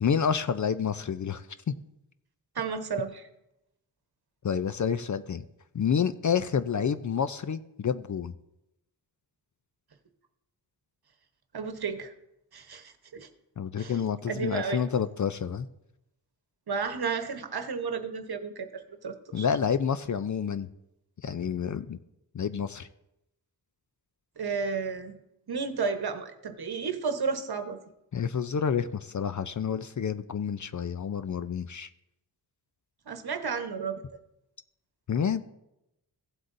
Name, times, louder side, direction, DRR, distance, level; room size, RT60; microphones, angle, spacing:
voice 1, 0.0-1.7 4.4-5.4 5.7-8.3 13.6-15.7 19.3-20.7 21.2-22.0 22.3-22.9 28.1-31.9 35.1-35.4, left 7 dB, 45° left, 12 dB, 0.5 m, -29 dB
voice 2, 2.5-3.3 11.5-12.1 12.5-13.3 13.8-14.0 14.3-14.8 16.7-19.5 24.4-25.2 25.5-27.8 33.1-34.0, right 5 dB, 60° right, 7 dB, 1.1 m, -32 dB
16.0 x 7.9 x 2.6 m, 0.85 s
wide cardioid pair, 75°, 43 cm